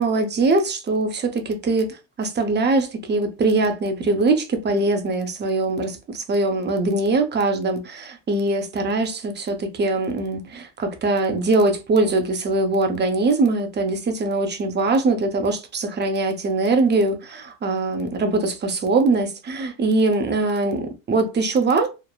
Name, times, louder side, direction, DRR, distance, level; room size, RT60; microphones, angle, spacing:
voice 1, 0.0-1.9 2.2-21.9, right 3 dB, 25° right, 0.6 m, -22 dB
3.0 x 2.0 x 2.3 m
supercardioid pair, 100°, 41 cm